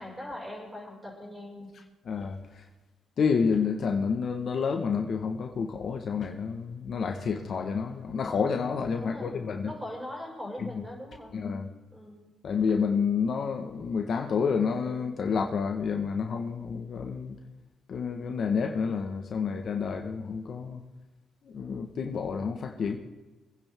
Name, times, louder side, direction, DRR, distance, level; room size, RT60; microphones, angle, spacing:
voice 1, 0.0-1.7 9.0-11.4 11.9-12.3, left 1 dB, 10° right, -2 dB, 5.8 m, -41 dB
voice 2, 2.0-2.6 3.2-9.7 10.6-10.7 11.3-11.7 12.4-17.4 17.9-20.8 21.4-23.0, left 5 dB, 55° left, 3 dB, 1.5 m, -29 dB
25.0 x 10.0 x 3.7 m, 1.2 s
cardioid pair, 90°, 0 cm